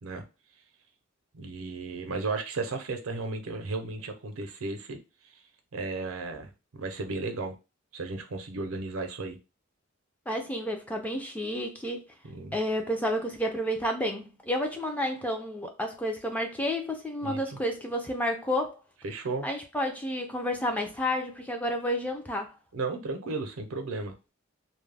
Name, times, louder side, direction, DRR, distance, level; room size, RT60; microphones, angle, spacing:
voice 1, 1.3-5.0 5.7-7.5 7.9-9.4 12.2-12.6 17.2-17.4 19.0-19.5 22.7-24.1, right 3 dB, 80° right, 0.5 m, -34 dB
voice 2, 10.3-12.0 12.5-18.8 19.4-22.5, equal, 5° left, 0.3 m, -30 dB
2.2 x 2.0 x 3.2 m
head